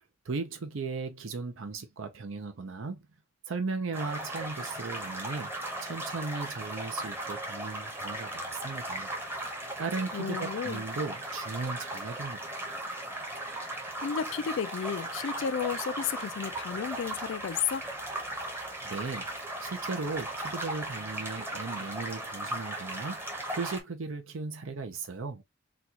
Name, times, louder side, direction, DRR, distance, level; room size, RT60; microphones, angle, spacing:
voice 1, 0.0-3.0 3.5-9.1 9.8-12.6 18.8-19.3 19.6-25.4, right 4 dB, 70° right, 0.6 m, -37 dB
sound 1, 3.9-23.8, right 1 dB, 10° right, 0.8 m, -37 dB
voice 2, 10.1-10.8 14.0-17.9, left 7 dB, 60° left, 0.3 m, -33 dB
4.0 x 2.3 x 2.8 m
head